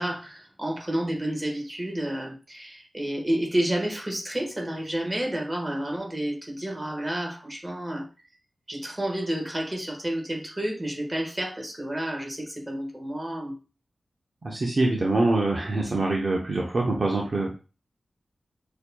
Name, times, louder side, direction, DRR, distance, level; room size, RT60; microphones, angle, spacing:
voice 1, 0.0-8.1 8.7-13.6, right 1 dB, 20° right, 1.4 m, -30 dB
voice 2, 14.4-17.6, right 2 dB, 55° right, 0.8 m, -24 dB
6.5 x 2.7 x 2.3 m
wide cardioid pair, 85°, 0 cm